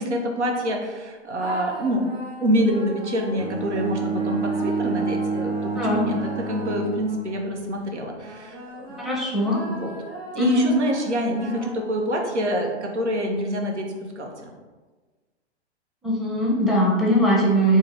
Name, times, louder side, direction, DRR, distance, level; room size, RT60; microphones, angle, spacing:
voice 1, 0.0-2.1 2.4-9.1 9.6-9.9 10.3-14.5, equal, 90° right, 2 dB, 0.7 m, -26 dB
sound 1, 1.4-7.6 8.2-12.1, right 1 dB, 60° right, 1.4 m, -39 dB
Bowed string instrument, 3.4-7.6, right 3 dB, 20° right, 1.2 m, -28 dB
voice 2, 9.0-9.6 10.4-10.7 16.0-17.8, equal, ahead, -4 dB, 0.6 m, -20 dB
3.5 x 2.8 x 3.3 m, 1.3 s
figure-of-eight pair, 110°, 34 cm